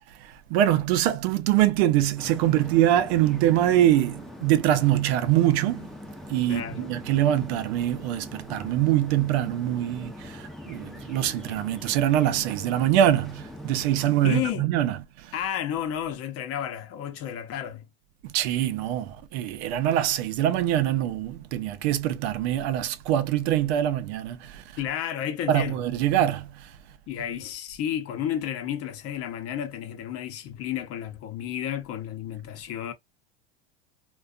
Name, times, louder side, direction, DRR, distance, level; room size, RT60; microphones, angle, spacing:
voice 1, 0.5-5.8 6.3-15.0 18.3-24.6 25.5-26.5, right 12 dB, 70° right, 0.6 m, -24 dB
sound 1, 2.2-14.5, left 1 dB, ahead, 0.5 m, -42 dB
voice 2, 6.5-6.9 14.2-14.7 15.3-17.9 24.8-25.8 27.1-32.9, left 10 dB, 45° left, 0.7 m, -32 dB
2.4 x 2.3 x 2.3 m
supercardioid pair, 110°, 33 cm